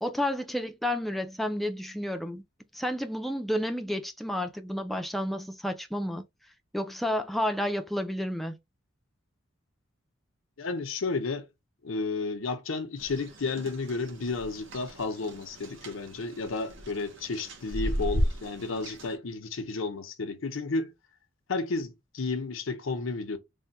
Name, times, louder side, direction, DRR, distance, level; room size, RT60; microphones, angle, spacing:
voice 1, 0.0-2.4 2.7-6.2 6.7-8.6, left 1 dB, ahead, 0.4 m, -31 dB
voice 2, 10.6-11.5 11.8-20.9 21.5-23.4, left 3 dB, 75° left, 0.7 m, -32 dB
sound 1, 13.0-19.1, equal, 70° right, 0.9 m, -35 dB
3.4 x 2.1 x 4.1 m
head